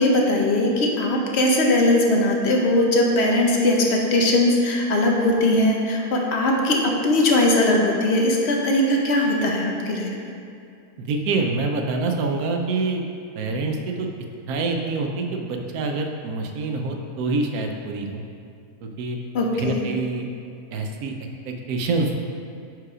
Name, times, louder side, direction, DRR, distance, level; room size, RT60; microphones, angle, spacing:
voice 1, 0.0-10.1 19.3-19.8, left 1 dB, 50° left, 0 dB, 1.0 m, -20 dB
voice 2, 11.0-13.0 13.4-14.1 14.5-18.2 18.8-19.2 19.5-20.3 20.7-21.1 21.5-22.1, right 3 dB, 75° right, 3 dB, 1.1 m, -26 dB
5.7 x 4.8 x 4.8 m, 2.4 s
omnidirectional pair, 1.6 m